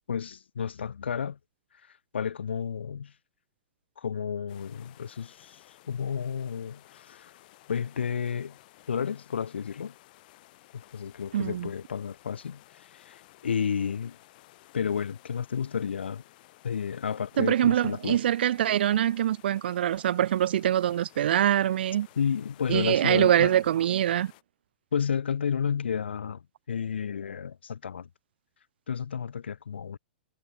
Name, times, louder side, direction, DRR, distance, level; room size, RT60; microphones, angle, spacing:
voice 1, 0.1-1.4 2.1-3.1 4.0-5.6 5.9-7.3 7.7-8.6 8.9-9.9 10.7-14.2 14.7-16.2 16.6-18.2 22.2-23.6 24.9-26.4 26.7-28.1 28.9-30.0, left 7 dB, 75° left, 1.3 m, -31 dB
sound 1, 4.5-24.4, left 18 dB, 50° left, 5.1 m, -56 dB
voice 2, 11.3-11.7 17.4-22.1 22.7-24.3, right 11 dB, 65° right, 0.4 m, -24 dB
figure-of-eight pair, 110°, 6 cm